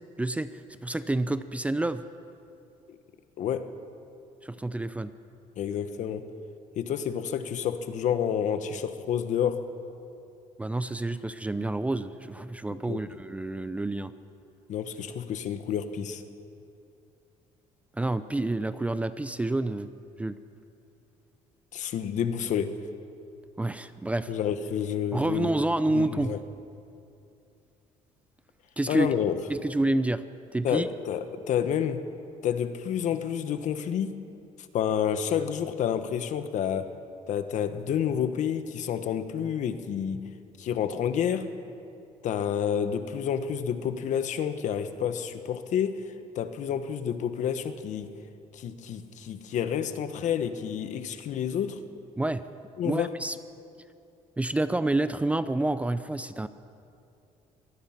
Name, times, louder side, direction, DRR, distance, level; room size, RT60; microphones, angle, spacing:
voice 1, 0.2-2.0 4.4-5.1 10.6-14.1 18.0-19.9 20.2-20.4 23.6-24.3 25.1-26.4 28.8-29.1 29.5-30.2 30.5-30.9 52.2-52.4 52.8-53.4 54.4-56.5, right 2 dB, 10° right, 12 dB, 0.5 m, -28 dB
voice 2, 3.4-3.7 5.6-6.3 6.7-9.7 12.9-13.0 14.7-16.2 21.7-22.8 24.3-25.5 25.9-26.4 28.9-29.4 30.6-32.1 32.4-34.2 34.7-37.0 37.3-40.3 40.6-41.5 42.2-46.0 46.3-48.1 48.5-51.8 52.8-53.2, left 8 dB, 60° left, 10 dB, 1.3 m, -29 dB
24.5 x 18.5 x 5.9 m, 2.6 s
cardioid pair, 135°, 14 cm